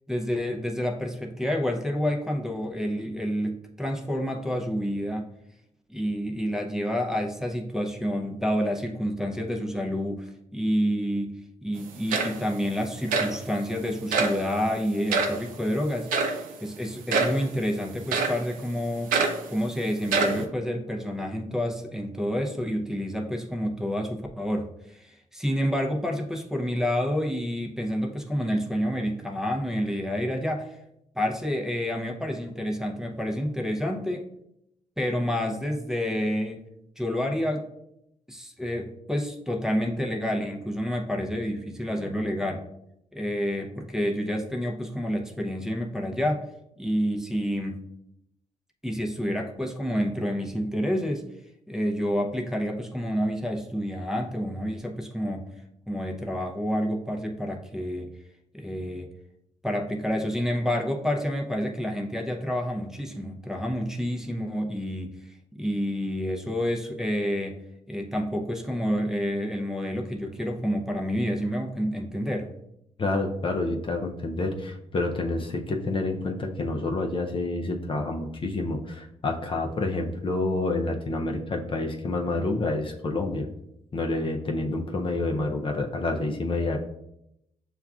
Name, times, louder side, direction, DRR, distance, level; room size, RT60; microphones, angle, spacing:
voice 1, 0.1-5.3 5.9-11.3 11.6-19.2 19.5-30.8 31.1-34.2 35.0-36.6 37.0-37.7 38.3-42.6 43.1-46.4 46.8-47.8 48.8-51.3 51.7-55.4 55.9-58.1 58.5-59.1 59.6-65.2 65.5-67.6 67.9-72.5, equal, 5° right, -1 dB, 0.6 m, -29 dB
sound 1, 11.8-11.9 12.1-12.6 13.1-13.4 14.1-14.4 15.1-15.4 16.1-16.4 17.1-17.4 18.1-18.4 19.1-19.4 20.0-20.4, right 4 dB, 80° right, 0.6 m, -25 dB
voice 2, 73.0-83.5 83.9-86.8, left 2 dB, 40° left, 2 dB, 0.5 m, -28 dB
6.9 x 2.3 x 2.4 m, 0.80 s
cardioid pair, 70°, 14 cm